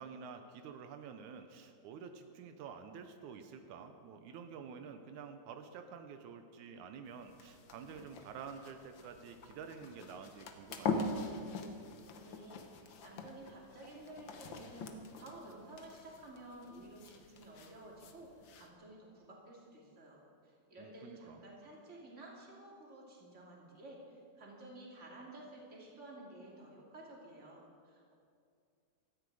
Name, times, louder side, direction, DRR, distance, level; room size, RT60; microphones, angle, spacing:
voice 1, 0.0-11.2 20.8-21.4, right 6 dB, 85° right, 7 dB, 2.2 m, -49 dB
sound 1, 7.1-18.7, left 4 dB, 65° left, 1.2 m, -44 dB
voice 2, 12.2-28.1, right 1 dB, 25° right, -3 dB, 2.7 m, -53 dB
17.5 x 13.5 x 4.8 m, 2.3 s
omnidirectional pair, 3.4 m